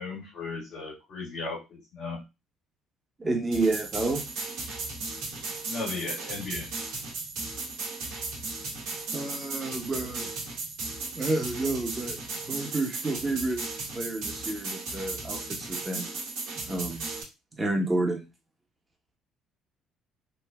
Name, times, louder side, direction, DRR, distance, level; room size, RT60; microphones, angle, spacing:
voice 1, 0.0-2.2 5.7-6.7, left 4 dB, 55° left, -4 dB, 1.7 m, -36 dB
voice 2, 3.2-4.2 9.1-10.3 11.2-12.2 12.5-13.6 13.9-16.1 16.7-17.1 17.6-18.3, right 2 dB, 25° right, 2 dB, 1.0 m, -30 dB
sound 1, 3.5-17.2, right 3 dB, 70° right, 1.0 m, -36 dB
3.1 x 2.5 x 2.3 m, 0.25 s
hypercardioid pair, 55°, 0 cm